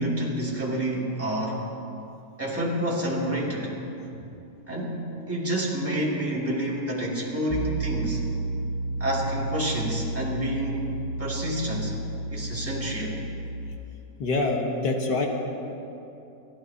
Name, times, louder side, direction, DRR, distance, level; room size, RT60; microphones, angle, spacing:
voice 1, 0.0-1.6 2.4-3.7 4.7-8.2 9.0-10.9 11.2-12.0 12.3-13.2, right 1 dB, 10° right, -5 dB, 2.3 m, -28 dB
Piano, 7.5-13.8, right 2 dB, 70° right, 0.7 m, -32 dB
voice 2, 14.2-15.3, left 3 dB, 75° left, 1 dB, 2.0 m, -25 dB
29.5 x 12.5 x 2.8 m, 2.8 s
omnidirectional pair, 1.9 m